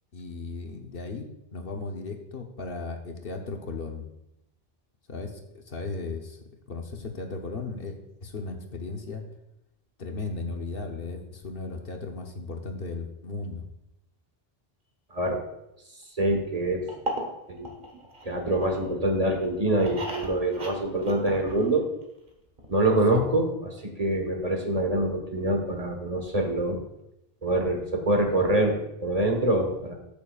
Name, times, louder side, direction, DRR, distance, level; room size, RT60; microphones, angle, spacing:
voice 1, 0.1-1.3 1.5-4.1 5.1-6.4 6.7-9.2 10.0-13.7 23.1-23.2, left 3 dB, 65° left, 3 dB, 1.1 m, -36 dB
voice 2, 16.2-16.8 17.5-17.7 18.2-21.8 22.7-26.8 27.4-29.9, right 1 dB, 35° right, 2 dB, 1.4 m, -25 dB
sound 1, 16.9-18.9 19.3-22.0 22.3-22.4 22.6-22.7, right 1 dB, 55° right, 1.5 m, -36 dB
13.5 x 6.9 x 2.4 m, 0.86 s
omnidirectional pair, 1.1 m